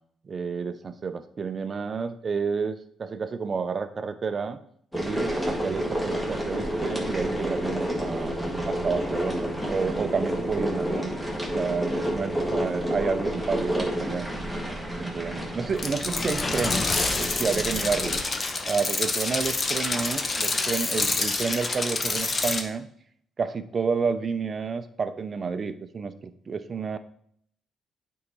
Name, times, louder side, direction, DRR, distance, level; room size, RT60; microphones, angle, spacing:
voice 1, 0.2-4.6 4.9-8.3 8.6-11.1 11.5-14.3 15.0-16.8 17.2-18.1 18.6-22.9 23.4-27.0, right 5 dB, 40° right, 11 dB, 0.6 m, -30 dB
sound 1, 4.9-18.2, equal, 5° left, 1.7 m, -30 dB
sound 2, 15.7-22.6, left 3 dB, 35° left, 0.9 m, -27 dB
8.6 x 4.7 x 4.1 m, 0.65 s
cardioid pair, 90°, 0 cm